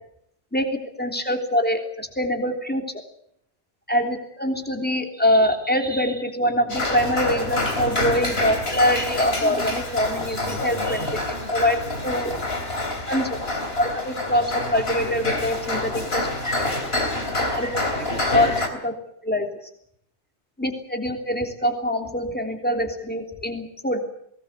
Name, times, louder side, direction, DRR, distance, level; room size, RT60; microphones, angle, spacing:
voice 1, 1.0-2.8 3.9-11.8 12.0-12.3 13.1-13.4 13.7-16.6 17.5-18.1 18.3-18.9 19.2-19.5 20.6-24.0, left 1 dB, 10° left, 4 dB, 3.2 m, -24 dB
sound 1, 6.7-18.7, left 2 dB, 60° left, 3.8 m, -27 dB
22.5 x 19.0 x 8.2 m, 0.71 s
omnidirectional pair, 1.1 m